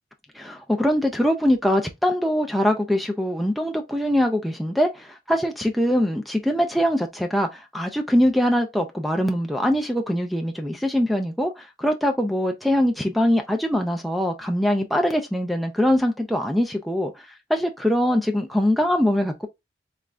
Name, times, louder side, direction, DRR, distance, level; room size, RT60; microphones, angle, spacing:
voice 1, 0.3-19.5, equal, ahead, 0.4 m, -23 dB
3.5 x 3.2 x 2.5 m
head